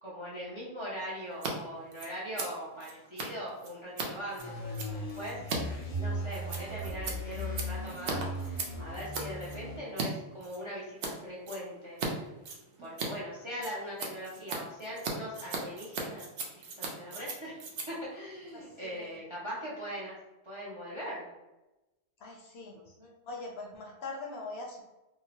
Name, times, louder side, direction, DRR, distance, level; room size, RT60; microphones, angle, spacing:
voice 1, 0.0-5.4 5.9-8.2 8.5-12.0 12.8-16.3 16.5-17.6 17.9-20.2 20.4-21.3 22.9-23.1, equal, 40° right, -6 dB, 0.4 m, -41 dB
Scissors, 1.3-1.5 1.8-10.1 10.4-11.1 11.4-12.1 12.4-19.2, right 4 dB, 70° right, 0.8 m, -39 dB
sound 1, 4.4-9.8, equal, 85° left, 1.0 m, -37 dB
voice 2, 18.5-19.2 22.2-22.8 23.3-24.8, left 3 dB, 65° left, -1 dB, 0.7 m, -42 dB
2.7 x 2.0 x 2.8 m, 1.0 s
omnidirectional pair, 1.3 m